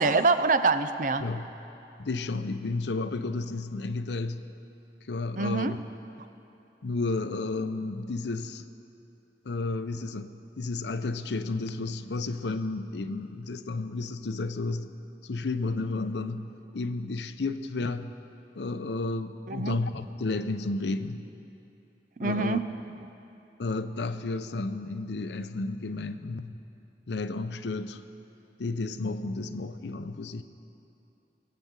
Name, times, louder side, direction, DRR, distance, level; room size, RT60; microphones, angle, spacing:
voice 1, 0.0-1.2 5.4-5.8 19.5-19.8 22.2-22.7, right 3 dB, 45° right, 11 dB, 0.5 m, -25 dB
voice 2, 2.0-4.5 5.1-5.8 6.8-8.7 9.4-14.9 15.2-18.1 18.5-21.2 22.2-22.6 23.6-26.6 27.1-28.0 28.6-30.4, left 3 dB, 80° left, 11 dB, 0.6 m, -32 dB
20.5 x 7.6 x 8.0 m, 2.9 s
head